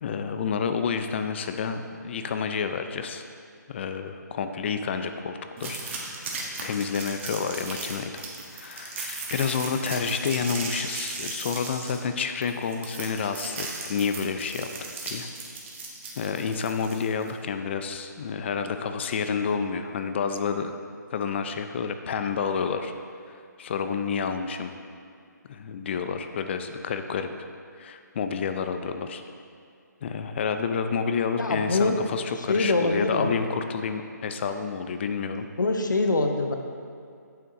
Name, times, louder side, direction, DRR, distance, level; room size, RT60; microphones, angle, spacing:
voice 1, 0.0-3.2 3.7-5.8 6.2-8.2 8.5-14.7 15.1-15.3 16.2-20.7 21.1-22.9 23.6-24.7 25.5-27.3 27.8-29.2 30.0-35.5, left 6 dB, 35° left, 8 dB, 0.5 m, -29 dB
sound 1, 5.6-17.3, right 3 dB, 40° right, 1.3 m, -37 dB
voice 2, 31.4-32.0 32.5-33.3 35.6-36.5, left 2 dB, 85° left, 4 dB, 0.8 m, -24 dB
8.5 x 6.8 x 3.7 m, 2.3 s
figure-of-eight pair, 150°, 10 cm